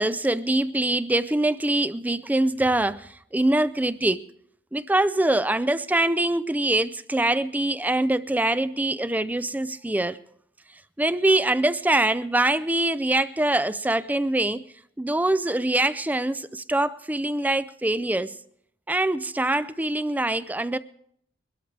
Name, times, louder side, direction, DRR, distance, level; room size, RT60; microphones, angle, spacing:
voice 1, 0.0-4.2 4.7-10.2 11.0-14.6 15.0-18.4 18.9-20.8, right 1 dB, 10° right, 0.4 m, -24 dB
22.5 x 13.0 x 3.3 m
head